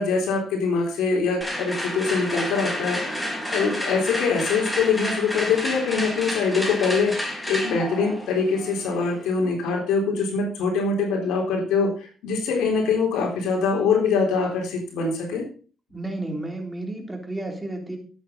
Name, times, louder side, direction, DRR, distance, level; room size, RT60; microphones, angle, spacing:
voice 1, 0.0-15.5, left 4 dB, 90° left, 1 dB, 3.8 m, -24 dB
sound 1, 1.4-9.4, left 1 dB, 10° left, 4.5 m, -30 dB
voice 2, 15.9-18.0, right 2 dB, 10° right, 2 dB, 3.7 m, -32 dB
11.5 x 8.5 x 5.2 m, 0.39 s
cardioid pair, 90°, 0 cm